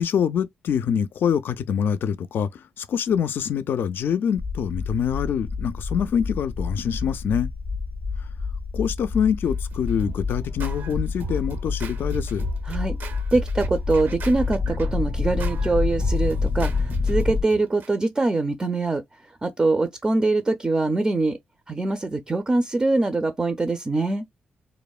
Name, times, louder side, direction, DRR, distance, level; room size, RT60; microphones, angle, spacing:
voice 1, 0.0-7.5 8.7-12.4, left 8 dB, 65° left, 0.3 m, -25 dB
sound 1, 4.4-17.4, left 4 dB, 25° left, 0.6 m, -28 dB
Scratching (performance technique), 9.4-17.9, right 6 dB, 65° right, 0.6 m, -38 dB
voice 2, 12.6-13.0 13.3-19.0 19.3-21.4 21.7-24.2, right 2 dB, 20° right, 0.4 m, -23 dB
3.0 x 2.1 x 2.3 m
cardioid pair, 90°, 4 cm